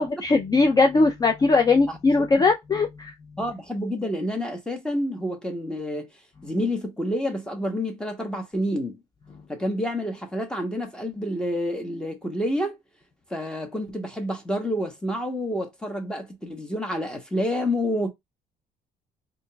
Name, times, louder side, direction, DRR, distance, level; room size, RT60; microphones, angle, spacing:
voice 1, 0.0-3.1, left 3 dB, 25° left, 0.4 m, -20 dB
voice 2, 3.4-6.1 6.4-9.0 9.5-12.8 13.3-18.1, equal, 5° left, 1.0 m, -28 dB
3.8 x 2.5 x 2.2 m
cardioid pair, 110°, 17 cm